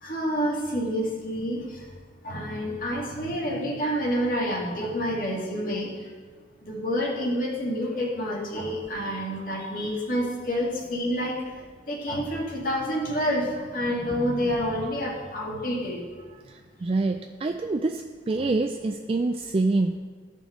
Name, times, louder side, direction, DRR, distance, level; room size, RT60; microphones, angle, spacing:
voice 1, 0.0-1.6 2.2-5.9 6.7-11.4 11.9-16.0 18.3-18.4, equal, 50° left, -3 dB, 1.9 m, -28 dB
voice 2, 16.5-20.0, right 3 dB, 30° right, 5 dB, 0.3 m, -26 dB
15.0 x 5.2 x 3.7 m, 1.5 s
head